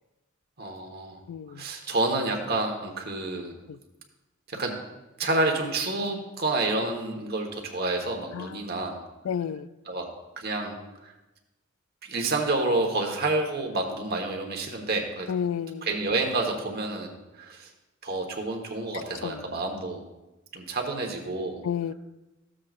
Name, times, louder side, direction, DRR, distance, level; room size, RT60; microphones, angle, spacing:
voice 1, 0.6-1.2 1.5-3.5 4.5-4.7 5.2-9.0 9.9-10.1 10.4-11.1 12.0-15.3 15.8-17.7 18.0-20.0 20.5-21.6, right 2 dB, 50° right, 2 dB, 1.3 m, -29 dB
voice 2, 1.3-1.6 3.7-3.8 8.3-8.5 9.2-9.7 15.3-15.9 19.2-19.3 21.6-21.9, left 8 dB, 75° left, 16 dB, 0.3 m, -30 dB
14.5 x 7.5 x 2.5 m, 1.0 s
head